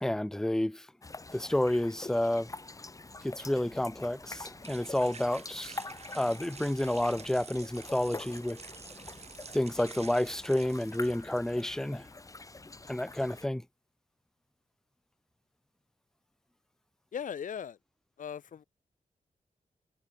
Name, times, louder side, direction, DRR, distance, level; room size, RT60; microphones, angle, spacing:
voice 1, 0.0-0.9 1.3-2.5 3.2-5.8 6.1-8.6 9.5-12.1 12.9-13.6, left 1 dB, 5° left, 0.4 m, -30 dB
sound 1, 1.0-13.5, left 3 dB, 25° left, 7.7 m, -46 dB
sound 2, 3.0-11.6, right 6 dB, 50° right, 3.6 m, -50 dB
voice 2, 17.1-17.8 18.2-18.6, left 8 dB, 65° left, 1.1 m, -38 dB
wide cardioid pair, 165°, 14 cm